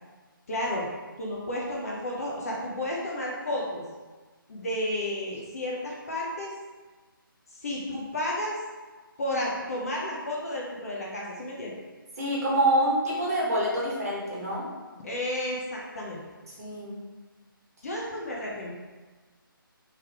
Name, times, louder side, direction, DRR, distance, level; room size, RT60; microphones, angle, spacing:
voice 1, 0.5-0.9 1.2-3.8 4.5-6.5 7.5-8.6 9.2-11.8 15.0-16.2 17.8-18.8, left 1 dB, 40° left, -3 dB, 0.7 m, -32 dB
voice 2, 12.2-14.7 16.6-17.0, right 1 dB, 40° right, -6 dB, 1.2 m, -26 dB
3.3 x 3.0 x 3.5 m, 1.3 s
figure-of-eight pair, 155°, 12 cm